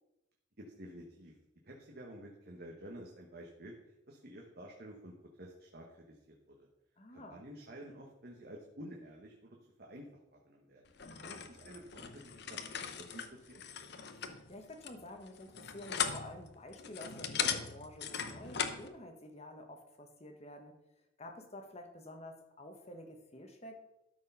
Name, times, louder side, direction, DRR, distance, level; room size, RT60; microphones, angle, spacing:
voice 1, 0.6-1.3 1.6-3.7 4.1-6.3 7.1-10.8 11.5-13.6, right 1 dB, 55° right, -1 dB, 1.3 m, -51 dB
voice 2, 7.0-7.4 11.0-11.5 14.2-20.7 21.2-23.8, left 1 dB, 35° left, 4 dB, 1.3 m, -50 dB
sound 1, 11.0-18.9, left 7 dB, 60° left, 0.8 m, -39 dB
12.5 x 4.7 x 5.6 m, 0.91 s
head